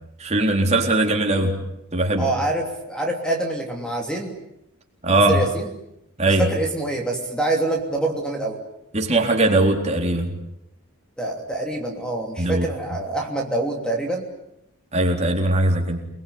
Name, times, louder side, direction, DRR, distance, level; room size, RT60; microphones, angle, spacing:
voice 1, 0.2-1.6 1.9-2.3 5.0-5.4 6.2-6.5 8.9-10.3 12.4-12.7 14.9-16.0, right 2 dB, 30° right, 1 dB, 4.1 m, -20 dB
voice 2, 2.2-4.3 5.3-5.7 6.3-8.6 11.2-14.3, right 2 dB, 5° left, 2 dB, 3.0 m, -25 dB
28.5 x 21.0 x 9.7 m, 0.83 s
head